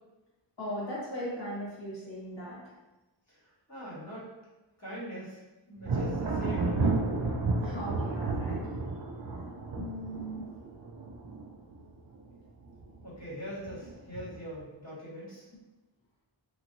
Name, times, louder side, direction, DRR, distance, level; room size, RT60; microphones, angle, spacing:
voice 1, 0.6-2.6 7.6-8.6 9.8-10.5, equal, 60° left, -8 dB, 1.5 m, -38 dB
voice 2, 3.3-4.3 4.8-5.4 5.7-6.8 13.0-15.4, equal, 35° left, -9 dB, 1.5 m, -42 dB
Thunder, 5.8-12.3 12.6-13.2 13.7-14.5, right 3 dB, 50° right, 0.5 m, -32 dB
2.9 x 2.7 x 2.5 m, 1.1 s
wide cardioid pair, 50°, 48 cm